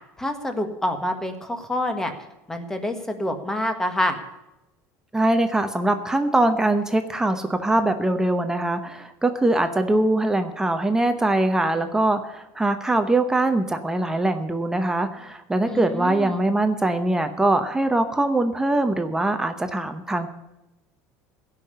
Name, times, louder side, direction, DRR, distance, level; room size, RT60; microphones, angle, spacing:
voice 1, 0.2-2.1 2.5-4.2 15.7-16.5, left 1 dB, 5° left, 6 dB, 1.6 m, -27 dB
voice 2, 5.1-20.3, right 2 dB, 10° right, 7 dB, 0.9 m, -22 dB
16.5 x 5.8 x 9.6 m, 0.94 s
cardioid pair, 140°, 7 cm